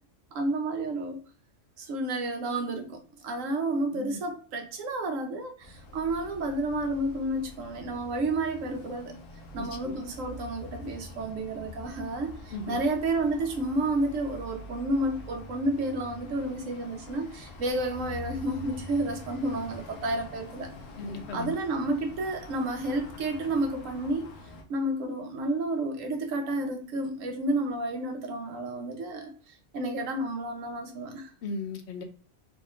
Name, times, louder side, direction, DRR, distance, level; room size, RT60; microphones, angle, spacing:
voice 1, 0.3-1.2 1.8-9.1 9.5-20.7 21.3-24.3 24.7-31.3, right 2 dB, 85° right, 4 dB, 1.1 m, -31 dB
sound 1, 5.6-24.6, left 2 dB, 85° left, 1.1 m, -45 dB
voice 2, 9.6-10.0 12.5-12.8 21.0-21.5 31.4-32.0, left 3 dB, 65° left, 6 dB, 0.8 m, -37 dB
4.0 x 3.0 x 2.4 m, 0.40 s
omnidirectional pair, 1.3 m